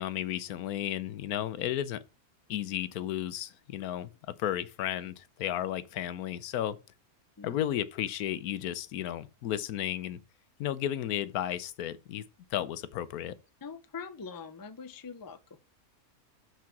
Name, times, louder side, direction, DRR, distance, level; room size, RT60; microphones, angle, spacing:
voice 1, 0.0-2.0 2.5-4.1 4.4-6.8 7.4-10.2 10.6-12.2 12.5-13.4, left 11 dB, 80° left, 1.2 m, -33 dB
voice 2, 13.6-15.6, left 5 dB, 30° left, 0.4 m, -43 dB
6.0 x 5.7 x 5.8 m
omnidirectional pair, 1.5 m